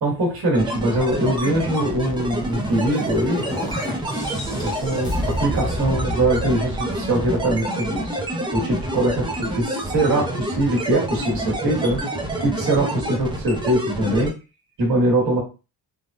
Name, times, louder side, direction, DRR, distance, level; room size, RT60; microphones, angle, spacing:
voice 1, 0.0-3.4 4.1-8.2 8.5-12.0 12.4-14.3 14.8-15.4, right 1 dB, 50° right, -1 dB, 1.4 m, -22 dB
sound 1, 0.5-14.3, right 1 dB, 10° right, 0.6 m, -28 dB
sound 2, 2.2-7.5, left 1 dB, 10° left, 0.9 m, -31 dB
3.3 x 2.2 x 2.6 m, 0.31 s
cardioid pair, 105°, 43 cm